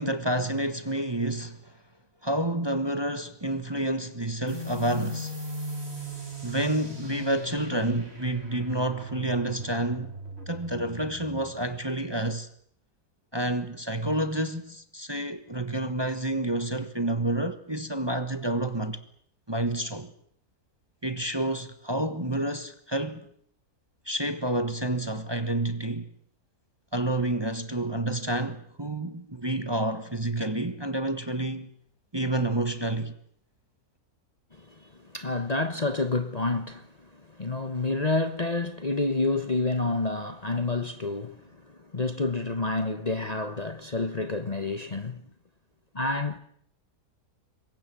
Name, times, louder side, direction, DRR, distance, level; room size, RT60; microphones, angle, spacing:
voice 1, 0.0-1.7 2.2-5.3 6.4-10.2 10.5-12.5 13.3-19.0 19.5-20.1 21.0-23.3 24.0-26.1 26.9-31.7 32.1-33.2, right 1 dB, 15° right, 1.4 m, -29 dB
sound 1, 4.5-11.7, left 1 dB, 45° right, 5.3 m, -38 dB
voice 2, 34.6-45.2 45.9-46.4, left 3 dB, 30° left, 1.3 m, -29 dB
27.5 x 23.0 x 7.8 m
omnidirectional pair, 1.6 m